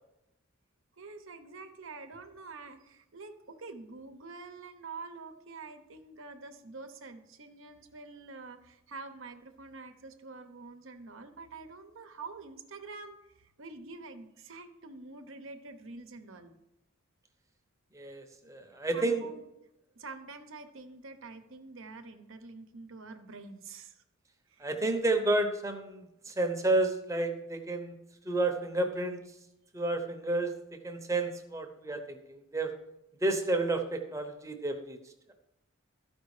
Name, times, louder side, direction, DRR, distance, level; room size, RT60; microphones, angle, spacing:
voice 1, 1.0-16.5 18.9-19.4 19.9-24.0 24.5-24.7, right 3 dB, 70° right, 7 dB, 0.9 m, -46 dB
voice 2, 17.9-19.3 24.6-27.9 28.2-29.2 29.7-30.5 30.8-32.7 33.2-35.0, right 2 dB, 15° right, 4 dB, 0.9 m, -31 dB
13.0 x 5.3 x 4.9 m, 0.89 s
head